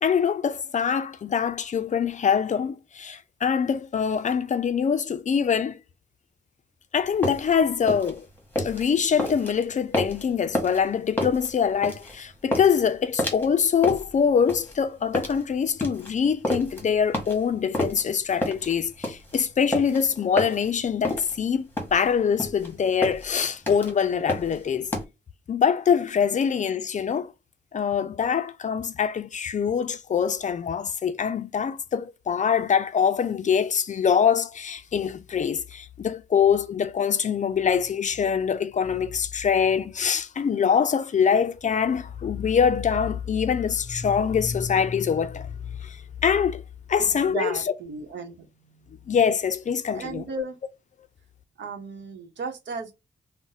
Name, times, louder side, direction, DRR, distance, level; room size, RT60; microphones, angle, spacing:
voice 1, 0.0-5.8 6.9-8.3 8.6-24.9 25.5-27.3 27.7-45.5 45.8-46.0 46.2-46.6 46.9-47.7 49.1-50.5, left 7 dB, 45° left, 0.4 m, -24 dB
sound 1, 7.0-25.0, left 1 dB, 10° left, 1.0 m, -30 dB
voice 2, 47.0-48.5 49.9-50.6 51.6-52.9, right 5 dB, 80° right, 0.8 m, -35 dB
2.6 x 2.1 x 3.9 m
wide cardioid pair, 105°, 18 cm